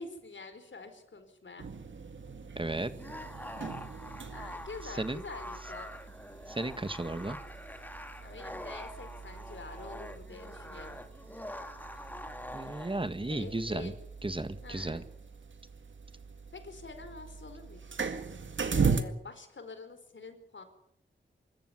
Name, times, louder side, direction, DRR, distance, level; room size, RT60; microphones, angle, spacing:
voice 1, 0.0-1.7 4.3-5.9 8.2-11.0 13.3-14.0 14.6-15.1 16.5-18.0 18.7-20.6, left 3 dB, 70° left, 8 dB, 4.4 m, -46 dB
sound 1, 1.6-19.0, right 5 dB, 75° right, 2.0 m, -39 dB
voice 2, 2.6-2.9 4.8-5.2 6.5-7.4 12.5-13.9 14.2-15.0, right 2 dB, 25° right, 11 dB, 1.7 m, -34 dB
sound 2, 2.9-13.1, left 1 dB, 10° left, 2.5 m, -45 dB
25.0 x 14.0 x 9.7 m, 0.77 s
wide cardioid pair, 60°, 20 cm